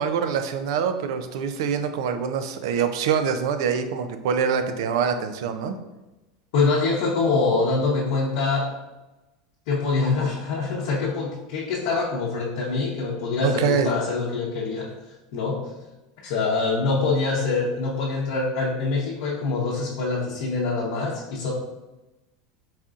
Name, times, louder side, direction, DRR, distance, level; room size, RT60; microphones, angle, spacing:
voice 1, 0.0-5.8 13.4-13.9, right 6 dB, 65° right, 9 dB, 0.4 m, -25 dB
voice 2, 6.5-8.7 9.7-14.9 15.3-15.7 16.2-21.5, left 3 dB, 55° left, -6 dB, 0.8 m, -24 dB
4.1 x 3.8 x 2.4 m, 1.0 s
supercardioid pair, 175°, 3 cm